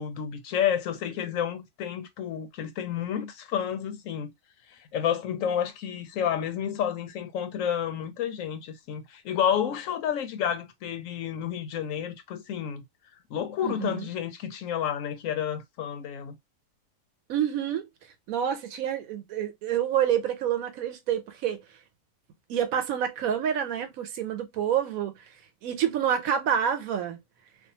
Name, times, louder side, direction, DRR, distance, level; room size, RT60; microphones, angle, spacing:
voice 1, 0.0-4.3 4.9-12.8 13.3-16.4, left 9 dB, 75° left, 1.0 m, -30 dB
voice 2, 13.6-14.1 17.3-17.9 18.3-21.6 22.5-25.2 25.6-27.2, right 9 dB, 90° right, 1.1 m, -28 dB
2.5 x 2.3 x 2.7 m
omnidirectional pair, 1.4 m